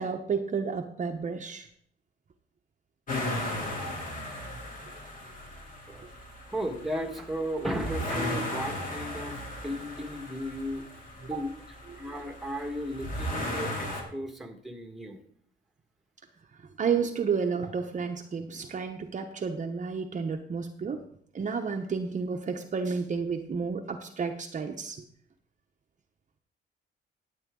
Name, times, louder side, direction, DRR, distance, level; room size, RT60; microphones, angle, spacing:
voice 1, 0.0-1.7 11.3-11.4 16.6-21.0 21.3-25.0, right 5 dB, 40° right, 4 dB, 0.9 m, -31 dB
sound 1, 3.1-14.0, left 1 dB, 45° left, 2.9 m, -36 dB
voice 2, 6.5-9.4 9.6-10.8 11.1-11.5 12.0-15.2, equal, ahead, 5 dB, 1.6 m, -35 dB
12.0 x 8.3 x 3.8 m, 0.64 s
cardioid pair, 90°, 20 cm